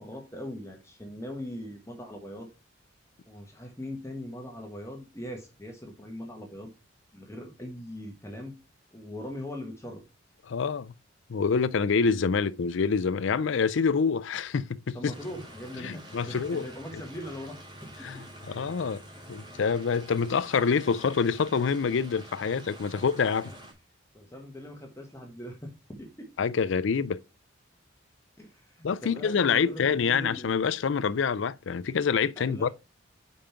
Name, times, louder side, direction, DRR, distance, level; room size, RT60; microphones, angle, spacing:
voice 1, 0.0-2.5 3.3-6.7 7.1-8.5 8.9-10.0 14.9-18.3 22.9-23.0 23.4-23.5 24.1-26.3 28.4-30.8 32.4-32.7, equal, 15° left, 1.4 m, -41 dB
voice 2, 10.5-10.9 11.3-15.1 15.8-16.6 18.0-18.2 18.5-19.0 19.3-23.5 26.4-27.2 28.8-32.7, left 5 dB, 65° left, 0.4 m, -26 dB
sound 1, 15.1-23.7, right 1 dB, 20° right, 2.5 m, -48 dB
5.4 x 5.1 x 5.7 m
head